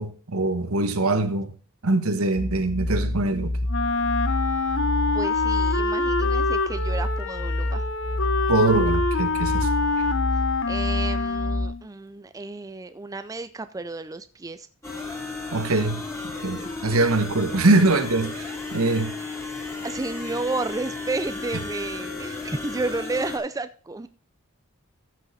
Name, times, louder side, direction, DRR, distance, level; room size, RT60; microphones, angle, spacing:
voice 1, 0.0-1.5 1.8-3.6 8.5-9.7 15.5-16.0 16.4-19.1, right 2 dB, 75° right, 1.3 m, -23 dB
sound 1, 2.4-11.7, left 1 dB, 75° left, 2.8 m, -28 dB
Wind instrument woodwind instrument, 3.7-11.8, left 3 dB, 60° left, 1.0 m, -25 dB
voice 2, 5.1-7.8 10.3-14.7 19.8-24.1, right 3 dB, 15° right, 0.4 m, -32 dB
sound 2, 14.8-23.4, left 3 dB, 15° left, 2.6 m, -34 dB
14.0 x 6.3 x 4.1 m
head